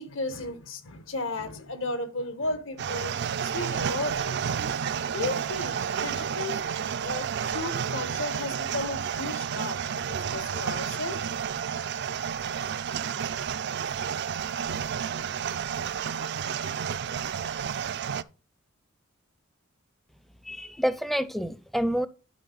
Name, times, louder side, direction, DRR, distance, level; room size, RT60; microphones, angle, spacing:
voice 1, 0.0-3.1 3.4-4.7 5.1-6.6 6.9-10.0 10.3-11.3 11.6-11.7 12.1-12.2, left 2 dB, 70° left, 1.4 m, -34 dB
sound 1, 2.8-18.2, right 7 dB, 55° right, 0.4 m, -31 dB
voice 2, 20.5-22.1, equal, ahead, 0.5 m, -28 dB
11.5 x 5.0 x 3.9 m
head